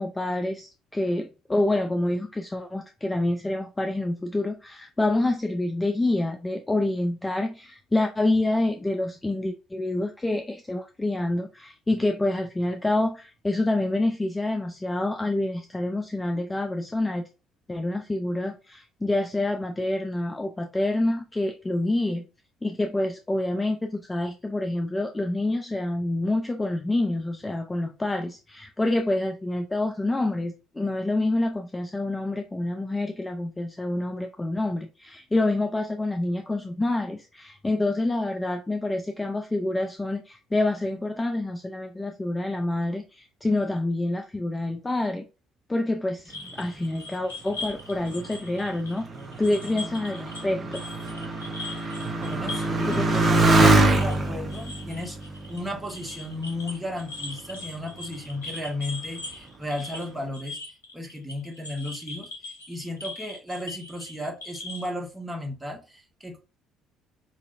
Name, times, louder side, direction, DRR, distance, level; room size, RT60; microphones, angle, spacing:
voice 1, 0.0-17.3 17.7-22.3 22.6-45.3 45.7-49.1 49.4-50.8 52.9-53.3, left 2 dB, 15° left, 0.5 m, -27 dB
sound 1, 46.3-50.5 50.7-64.9, left 3 dB, 85° left, 0.7 m, -40 dB
Motorcycle, 47.7-56.7 57.4-58.0, right 2 dB, 30° right, 0.9 m, -25 dB
voice 2, 52.2-53.0 53.3-55.2 55.5-60.6 60.9-62.3 62.7-66.4, left 1 dB, 5° right, 1.3 m, -34 dB
4.9 x 2.7 x 2.6 m
figure-of-eight pair, 50°, 0 cm